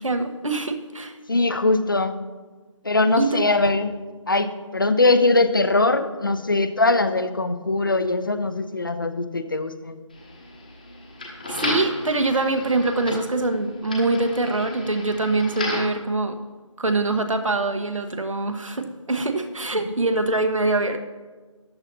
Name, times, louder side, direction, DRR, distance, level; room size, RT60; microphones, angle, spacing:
voice 1, 0.0-1.2 3.2-3.5 11.5-16.4 16.8-21.0, right 2 dB, 75° right, 6 dB, 1.3 m, -24 dB
voice 2, 1.3-2.2 2.8-4.0 4.3-10.0, left 2 dB, 40° left, 11 dB, 0.7 m, -21 dB
sound 1, 10.1-16.0, left 2 dB, 15° left, 1.1 m, -34 dB
13.5 x 10.5 x 2.7 m, 1.3 s
figure-of-eight pair, 175°, 17 cm